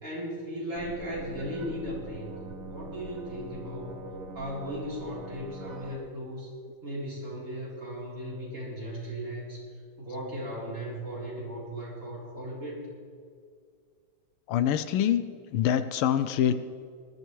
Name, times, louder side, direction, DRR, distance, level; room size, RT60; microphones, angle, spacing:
voice 1, 0.0-4.0 4.3-6.5 6.8-9.6 10.0-12.9, equal, 35° right, -6 dB, 4.2 m, -37 dB
sound 1, 0.7-6.0, right 2 dB, 90° right, 2.4 m, -43 dB
voice 2, 14.5-15.2 15.5-16.5, left 10 dB, 80° left, 12 dB, 1.5 m, -25 dB
20.0 x 12.5 x 3.2 m, 2.1 s
omnidirectional pair, 2.4 m